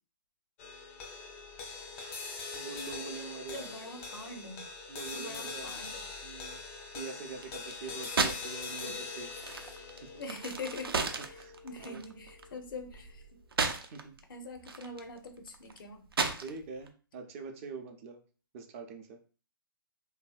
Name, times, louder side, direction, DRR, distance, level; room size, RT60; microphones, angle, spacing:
sound 1, 0.6-13.1, left 4 dB, 30° left, 0.5 m, -43 dB
voice 1, 2.5-3.7 4.9-5.7 6.2-6.6 6.9-9.6 10.0-10.1 11.0-11.1 11.3-11.5 11.8-12.0 13.8-14.2 16.4-18.2 18.5-19.2, right 4 dB, 35° right, 5 dB, 0.5 m, -44 dB
voice 2, 3.5-4.7 5.1-6.0 8.8-8.9 9.5-9.8 10.2-13.4 14.3-16.1, left 2 dB, 65° left, 5 dB, 0.7 m, -44 dB
sound 2, 7.4-8.6 8.8-14.2 14.6-16.9, right 4 dB, 90° right, 0.5 m, -34 dB
2.7 x 2.6 x 2.3 m, 0.38 s
hypercardioid pair, 135°, 12 cm